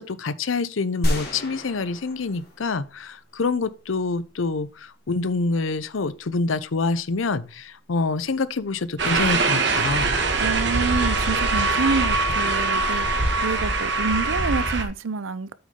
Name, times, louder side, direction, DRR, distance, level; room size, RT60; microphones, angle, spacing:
voice 1, 0.0-10.1, left 3 dB, 85° left, 0.7 m, -26 dB
sound 1, 1.0-3.3, equal, 50° left, 2.5 m, -29 dB
sound 2, 9.0-14.8, right 3 dB, 60° right, 1.8 m, -22 dB
voice 2, 10.4-15.5, right 4 dB, 85° right, 0.6 m, -27 dB
8.1 x 6.3 x 3.7 m
head